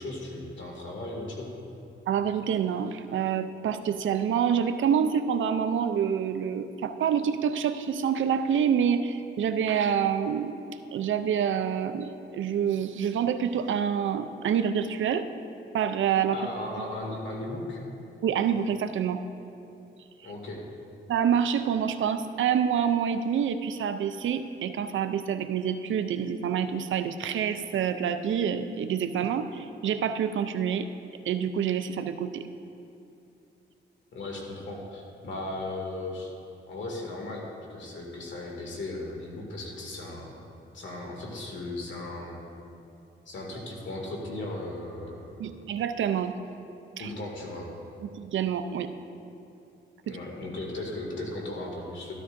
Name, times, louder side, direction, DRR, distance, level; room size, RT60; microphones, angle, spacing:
voice 1, 0.0-1.5 16.3-17.8 20.2-20.6 34.1-36.3 36.7-40.3 40.7-42.4 43.3-45.5 47.0-47.7 50.0-52.1, left 2 dB, 70° left, -1 dB, 2.3 m, -36 dB
voice 2, 2.1-10.6 10.9-15.3 15.7-16.4 18.2-19.2 21.1-30.9 31.3-32.4 45.4-46.3 47.0-47.1 48.0-48.9 50.1-50.2, right 8 dB, 80° right, 10 dB, 0.5 m, -27 dB
13.0 x 12.5 x 2.6 m, 2.7 s
cardioid pair, 80°, 20 cm